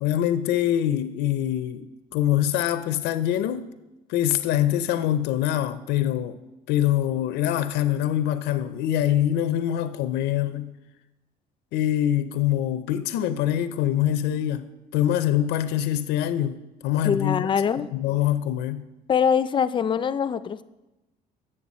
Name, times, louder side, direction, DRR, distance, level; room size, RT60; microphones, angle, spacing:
voice 1, 0.0-1.8 2.1-3.7 4.1-6.4 6.7-10.8 11.7-17.5 17.8-18.9, left 11 dB, 85° left, 0.5 m, -24 dB
voice 2, 17.0-17.9 19.1-20.6, left 7 dB, 30° left, 0.4 m, -23 dB
8.7 x 6.8 x 4.1 m
cardioid pair, 110°, 17 cm